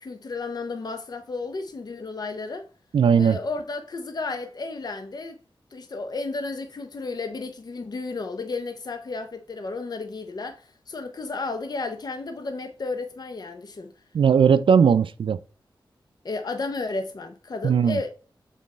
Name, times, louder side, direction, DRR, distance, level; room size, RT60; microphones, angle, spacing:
voice 1, 0.0-2.7 3.2-5.4 5.7-13.9 16.2-18.1, left 3 dB, 50° left, 0.7 m, -33 dB
voice 2, 2.9-3.4 14.1-15.4 17.6-18.0, right 7 dB, 75° right, 0.4 m, -18 dB
7.3 x 4.1 x 4.2 m
wide cardioid pair, 90°, 9 cm